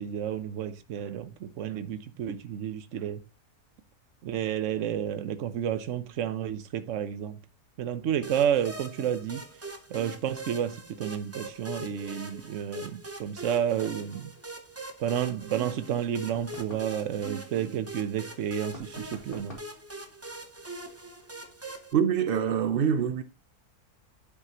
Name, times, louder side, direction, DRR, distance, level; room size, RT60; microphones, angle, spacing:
voice 1, 0.0-3.2 4.2-7.4 7.8-9.4 9.9-14.3 15.0-19.6, right 9 dB, 60° right, 1.0 m, -31 dB
sound 1, 8.2-21.9, right 2 dB, 15° right, 0.5 m, -42 dB
sound 2, 16.3-17.0 18.7-19.8, left 2 dB, 35° left, 2.2 m, -46 dB
voice 2, 21.9-23.2, right 8 dB, 90° right, 0.5 m, -25 dB
11.0 x 5.9 x 2.9 m
omnidirectional pair, 1.7 m